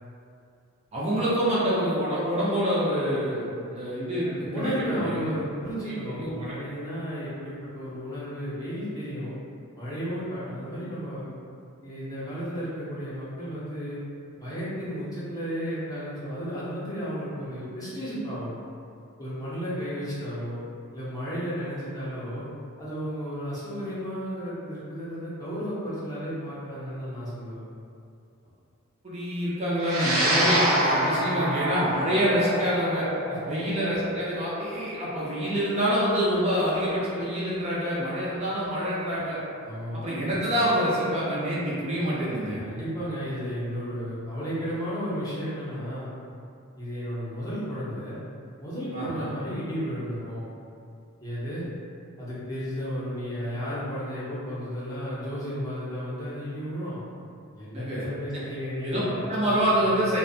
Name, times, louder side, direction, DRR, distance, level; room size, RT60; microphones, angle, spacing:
voice 1, 0.9-5.3 6.2-6.3 29.0-33.1 33.5-39.4 39.9-42.6 48.9-49.3 57.7-58.0 58.8-59.0 59.3-60.2, equal, 30° right, -8 dB, 0.4 m, -26 dB
voice 2, 4.1-9.3 9.7-11.3 11.8-14.0 14.4-18.5 19.2-20.6 20.9-22.5 22.8-27.6 31.2-31.6 33.3-33.4 39.6-40.2 42.6-46.1 46.8-48.2 48.6-50.5 51.2-51.7 52.2-57.0 57.5-59.2, equal, 15° left, -10 dB, 0.6 m, -33 dB
sound 1, 29.8-38.4, right 1 dB, 80° right, 0.6 m, -28 dB
2.4 x 2.1 x 2.6 m, 2.4 s
head